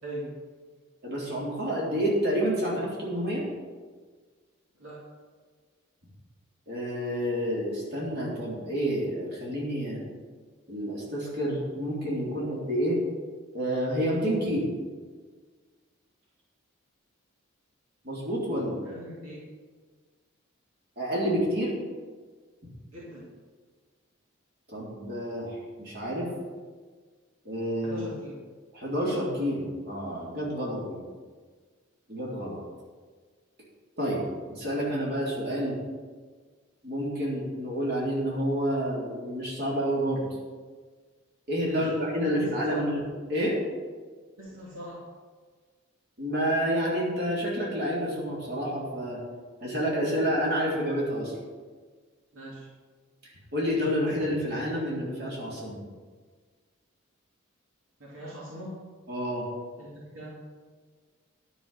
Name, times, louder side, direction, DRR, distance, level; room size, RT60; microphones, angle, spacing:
voice 1, 0.0-0.4 4.8-5.0 18.8-19.5 22.9-23.3 27.8-28.4 41.6-41.9 42.7-42.8 44.4-45.0 52.3-52.7 58.0-58.8 59.8-60.4, equal, 70° right, -6 dB, 2.6 m, -41 dB
voice 2, 1.0-3.5 6.7-10.0 10.7-13.0 13.5-14.7 18.0-18.8 21.0-21.7 24.7-26.3 27.4-28.0 28.7-31.0 32.1-32.6 34.0-34.2 34.5-35.8 36.8-40.3 41.5-43.0 43.3-43.6 46.2-49.2 49.6-51.4 53.5-55.8 59.1-59.5, equal, 50° right, -5 dB, 3.6 m, -29 dB
11.0 x 6.5 x 7.8 m, 1.5 s
head